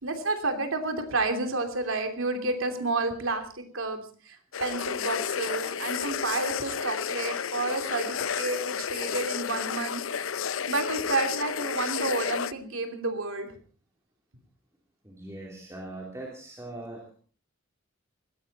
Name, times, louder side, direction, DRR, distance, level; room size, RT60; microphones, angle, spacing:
voice 1, 0.0-10.0 10.7-13.6, right 3 dB, 85° right, 5 dB, 3.1 m, -30 dB
sound 1, 4.5-12.5, left 7 dB, 80° left, 0.7 m, -31 dB
voice 2, 15.0-17.1, right 1 dB, 15° right, -2 dB, 3.2 m, -41 dB
19.5 x 15.5 x 4.2 m, 0.41 s
head